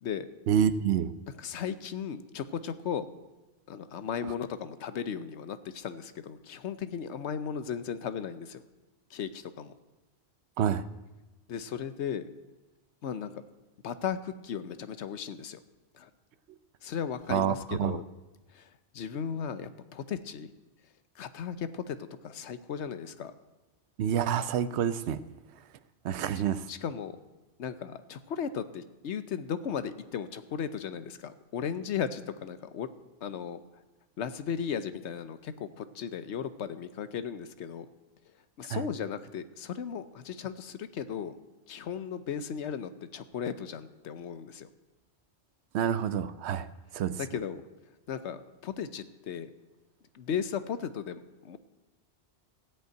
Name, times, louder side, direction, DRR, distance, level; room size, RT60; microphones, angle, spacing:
voice 1, 0.5-1.1 10.6-10.9 17.3-18.0 24.0-25.2 26.0-26.7 38.7-38.8 45.7-46.7 46.9-47.2, right 9 dB, 75° right, 15 dB, 0.9 m, -28 dB
voice 2, 1.4-3.1 3.7-8.6 9.1-9.7 11.5-12.3 13.0-13.4 13.8-15.6 15.9-16.1 16.8-18.0 18.5-20.5 21.2-23.3 26.7-27.1 27.6-32.9 33.2-33.6 34.2-37.9 38.6-41.4 41.7-44.7 47.2-47.6 48.1-49.5 50.1-51.6, left 7 dB, 80° left, 12 dB, 1.0 m, -36 dB
15.0 x 5.5 x 8.9 m, 1.1 s
omnidirectional pair, 1.1 m